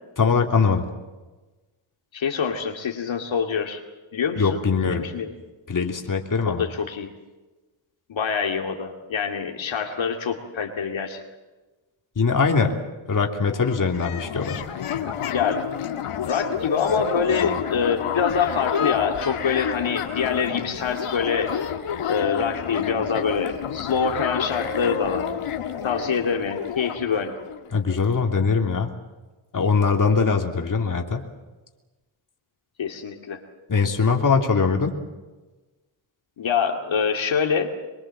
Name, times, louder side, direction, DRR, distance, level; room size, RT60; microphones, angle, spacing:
voice 1, 0.2-0.8 4.4-5.0 5.7-6.6 12.1-12.7 13.1-14.6 27.7-28.9 29.5-31.2 33.7-34.9, left 5 dB, 40° left, 2 dB, 3.1 m, -21 dB
voice 2, 2.1-3.8 4.1-5.3 6.5-7.1 8.1-11.2 15.3-15.7 16.2-21.5 22.1-25.3 25.8-27.3 32.8-33.4 36.4-37.7, left 6 dB, 65° left, 2 dB, 2.5 m, -25 dB
sound 1, 13.4-28.0, left 8 dB, 90° left, 2.1 m, -30 dB
25.0 x 23.5 x 7.6 m, 1.2 s
wide cardioid pair, 110°, 50 cm